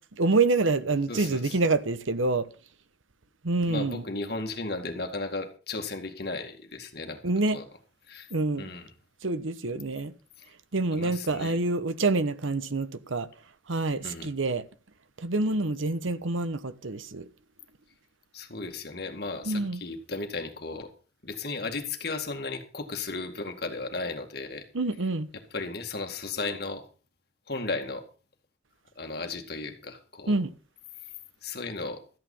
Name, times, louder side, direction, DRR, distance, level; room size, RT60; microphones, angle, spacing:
voice 1, 0.2-2.5 3.4-4.0 7.2-7.6 8.3-8.6 9.2-10.1 10.7-13.3 13.7-14.6 15.2-17.3 19.4-19.8 24.7-25.3 30.3-30.5, right 3 dB, 90° right, 1.0 m, -27 dB
voice 2, 1.1-1.6 3.7-7.2 7.5-7.6 8.1-8.3 8.6-8.9 10.9-11.5 14.0-14.3 18.3-20.9 21.2-24.7 25.5-26.8 27.5-28.0 29.0-30.3 31.4-32.0, left 3 dB, 55° left, 2.1 m, -35 dB
13.5 x 9.3 x 5.5 m
head